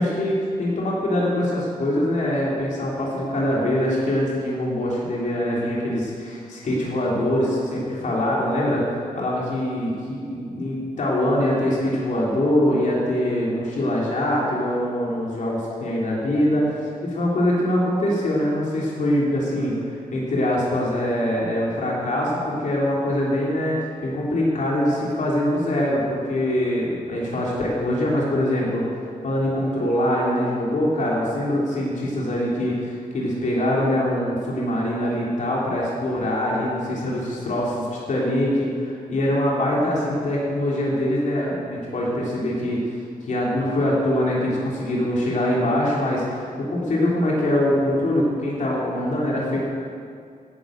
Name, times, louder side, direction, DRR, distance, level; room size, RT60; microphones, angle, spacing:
voice 1, 0.0-8.8 9.1-16.7 17.0-43.0 43.3-49.6, left 1 dB, 60° left, -4 dB, 3.3 m, -23 dB
16.5 x 10.5 x 6.7 m, 2.3 s
wide cardioid pair, 155°, 15 cm